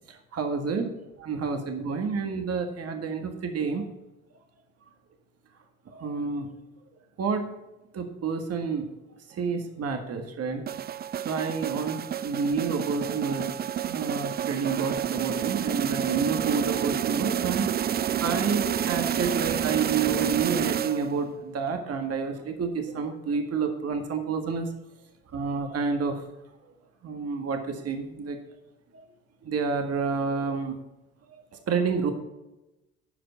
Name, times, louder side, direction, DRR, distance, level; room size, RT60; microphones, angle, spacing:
voice 1, 0.1-0.9 1.2-3.9 5.9-6.5 7.2-7.5 7.9-8.9 9.3-10.6 11.2-13.5 13.8-17.7 18.2-24.7 25.3-26.2 27.0-28.4 28.9-29.1 29.4-30.7 31.5-32.1, right 5 dB, 45° right, 5 dB, 1.8 m, -29 dB
sound 1, 10.7-21.3, right 9 dB, 30° right, 0.4 m, -29 dB
12.0 x 5.1 x 7.0 m, 0.98 s
hypercardioid pair, 65°, 33 cm